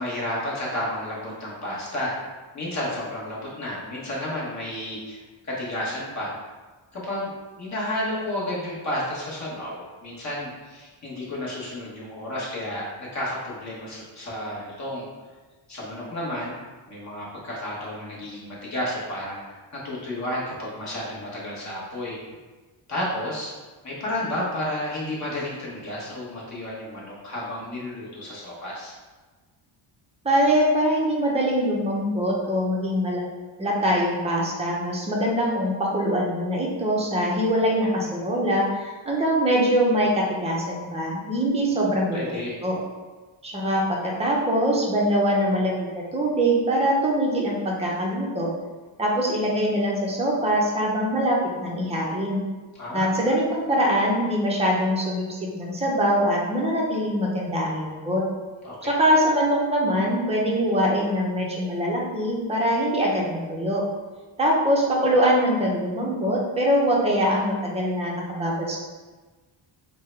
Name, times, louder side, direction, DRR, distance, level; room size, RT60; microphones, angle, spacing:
voice 1, 0.0-2.1 2.5-6.3 6.9-15.0 15.7-16.6 16.9-22.2 22.9-23.5 23.8-28.9 42.1-42.6 52.7-53.2 58.6-58.9, left 1 dB, 35° left, -6 dB, 1.1 m, -31 dB
voice 2, 30.2-33.2 33.6-42.4 42.6-42.8 43.4-48.5 49.0-52.4 52.9-58.2 58.8-63.8 64.4-68.8, equal, 15° right, -3 dB, 0.5 m, -23 dB
3.6 x 2.1 x 4.3 m, 1.3 s
wide cardioid pair, 175°, 48 cm